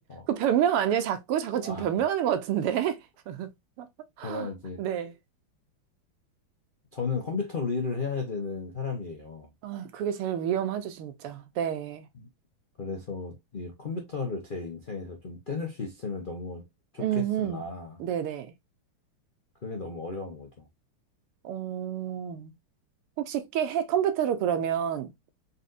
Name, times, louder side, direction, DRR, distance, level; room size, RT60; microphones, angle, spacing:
voice 1, 0.3-3.5 3.8-3.9 4.2-4.5 4.8-5.1 9.6-12.1 17.0-17.6 18.0-18.5 21.4-22.5 23.2-25.1, right 9 dB, 85° right, 1.8 m, -28 dB
voice 2, 1.6-1.9 4.2-4.8 6.9-9.5 12.1-12.3 12.8-16.6 16.9-18.0 19.6-20.7, left 4 dB, 85° left, 0.4 m, -34 dB
4.1 x 4.0 x 2.5 m
omnidirectional pair, 2.4 m